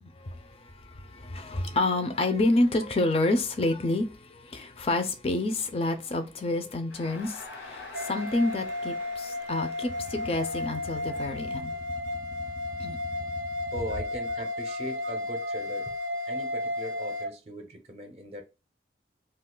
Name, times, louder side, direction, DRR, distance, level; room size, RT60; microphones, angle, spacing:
voice 1, 0.0-11.8 12.8-13.0, left 2 dB, 35° left, 0.4 m, -29 dB
Crowd, 6.9-12.1, left 3 dB, 85° left, 0.8 m, -47 dB
sound 1, 7.9-17.3, left 2 dB, 90° right, 0.4 m, -33 dB
voice 2, 13.7-15.9 16.3-18.4, right 1 dB, 35° right, 0.5 m, -39 dB
2.4 x 2.3 x 3.7 m
head